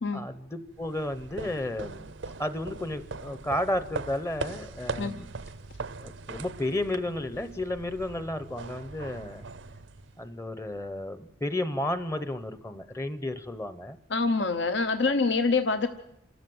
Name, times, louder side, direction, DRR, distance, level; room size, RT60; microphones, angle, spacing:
voice 1, 0.1-2.1 2.4-5.3 6.0-9.4 10.2-14.0, left 1 dB, 15° left, 12 dB, 0.7 m, -32 dB
sound 1, 0.7-10.4, right 4 dB, 80° right, 0.7 m, -40 dB
voice 2, 14.1-15.9, left 4 dB, 70° left, 9 dB, 0.8 m, -26 dB
27.5 x 13.0 x 7.8 m, 0.79 s
head